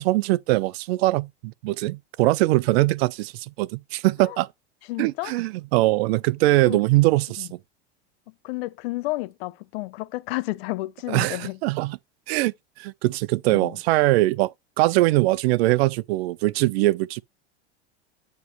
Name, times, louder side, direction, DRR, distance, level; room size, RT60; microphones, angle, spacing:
voice 1, 0.0-4.5 5.0-7.6 11.1-12.0 12.3-17.2, right 19 dB, 65° right, 0.5 m, -22 dB
voice 2, 4.9-5.3 6.7-6.8 7.4-7.5 8.4-11.6 13.5-13.8, left 21 dB, 65° left, 0.6 m, -31 dB
9.3 x 3.1 x 4.3 m
hypercardioid pair, 90°, 33 cm